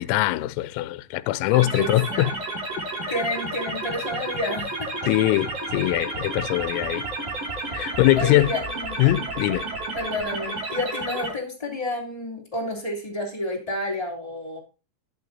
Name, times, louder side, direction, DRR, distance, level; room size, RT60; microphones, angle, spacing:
voice 1, 0.0-2.3 3.1-3.2 5.1-7.0 7.7-8.5 9.0-9.7, left 17 dB, 85° left, 3.3 m, -22 dB
sound 1, 1.5-11.3, right 2 dB, 45° right, 6.3 m, -31 dB
voice 2, 1.7-2.3 3.1-4.7 8.2-9.0 9.9-14.6, left 1 dB, 10° left, 1.6 m, -30 dB
12.0 x 11.0 x 2.7 m
omnidirectional pair, 5.9 m